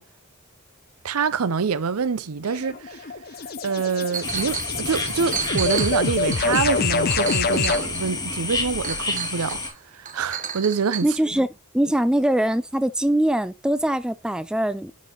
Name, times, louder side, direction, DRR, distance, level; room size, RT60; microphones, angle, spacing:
voice 1, 1.0-3.1 3.6-9.6 9.9-11.1, right 5 dB, 80° right, 0.6 m, -26 dB
sound 1, 2.4-7.9, left 4 dB, 45° left, 0.6 m, -26 dB
Chink clink, 4.1-4.7 5.1-8.2 8.8-9.7 10.1-11.1, right 7 dB, 35° right, 0.8 m, -32 dB
sound 2, 4.2-9.7, left 3 dB, 20° left, 1.6 m, -30 dB
voice 2, 11.0-11.5 11.7-14.9, right 1 dB, 5° right, 0.3 m, -22 dB
10.5 x 4.1 x 3.0 m
head